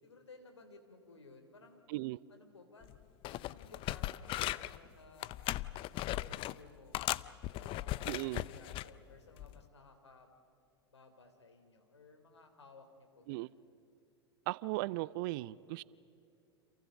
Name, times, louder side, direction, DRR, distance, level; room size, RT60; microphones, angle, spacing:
voice 1, 0.0-1.8 2.3-2.9 3.3-5.5 5.9-7.0 7.5-10.3 10.9-13.6, left 3 dB, 85° left, 3.2 m, -58 dB
voice 2, 1.9-2.2 8.1-8.4 13.3-13.5 14.5-15.8, right 20 dB, 50° right, 0.5 m, -37 dB
sound 1, 2.8-3.0 3.2-4.8 5.2-6.6 6.9-8.9 9.4-9.6, left 16 dB, 40° left, 0.6 m, -38 dB
30.0 x 27.5 x 5.2 m
hypercardioid pair, 95°, 14 cm